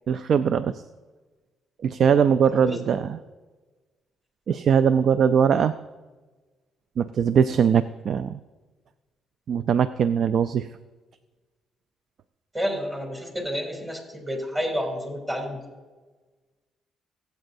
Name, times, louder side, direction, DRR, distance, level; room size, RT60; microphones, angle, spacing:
voice 1, 0.1-0.8 1.8-3.2 4.5-5.7 7.0-8.4 9.5-10.7, right 7 dB, 60° right, 13 dB, 0.3 m, -21 dB
voice 2, 12.5-15.6, equal, 20° right, 0 dB, 3.0 m, -30 dB
19.0 x 8.1 x 2.7 m, 1.3 s
cardioid pair, 90°, 0 cm